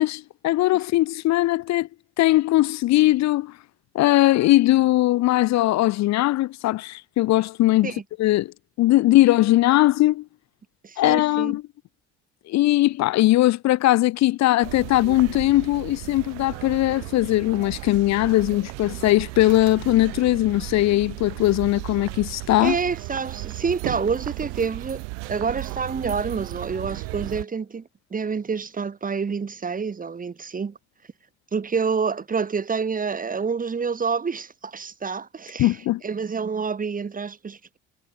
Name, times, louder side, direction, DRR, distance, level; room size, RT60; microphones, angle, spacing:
voice 1, 0.0-1.9 2.2-3.6 3.9-7.9 8.2-10.3 11.0-11.6 12.5-22.8 35.6-36.0, left 16 dB, 55° left, 0.7 m, -20 dB
voice 2, 10.8-11.5 22.6-27.8 28.1-30.8 31.5-35.7 36.0-37.8, right 5 dB, 25° right, 1.2 m, -28 dB
sound 1, 14.6-27.4, right 35 dB, 80° right, 1.2 m, -35 dB
hypercardioid pair, 65°, 32 cm